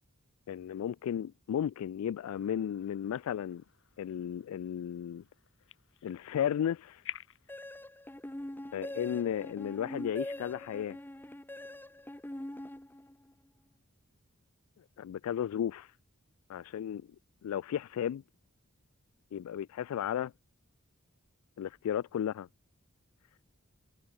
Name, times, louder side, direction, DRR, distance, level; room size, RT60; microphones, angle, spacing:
voice 1, 0.5-3.6 4.0-5.2 6.0-7.0 8.7-11.0 15.0-15.9 16.5-17.1 17.4-18.2 19.3-20.3 21.6-22.5, left 9 dB, 80° left, 0.3 m, -34 dB
sound 1, 2.3-7.6, left 12 dB, 65° left, 2.1 m, -51 dB
sound 2, 7.5-13.3, left 1 dB, 10° left, 0.8 m, -43 dB
head